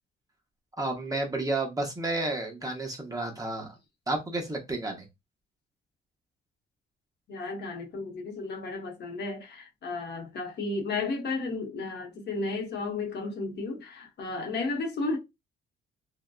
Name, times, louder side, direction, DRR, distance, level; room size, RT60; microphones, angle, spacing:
voice 1, 0.8-3.7 4.1-5.1, right 2 dB, 15° right, 0.7 m, -31 dB
voice 2, 7.3-15.2, left 3 dB, 55° left, 0.9 m, -33 dB
2.6 x 2.1 x 2.3 m
cardioid pair, 90°, 20 cm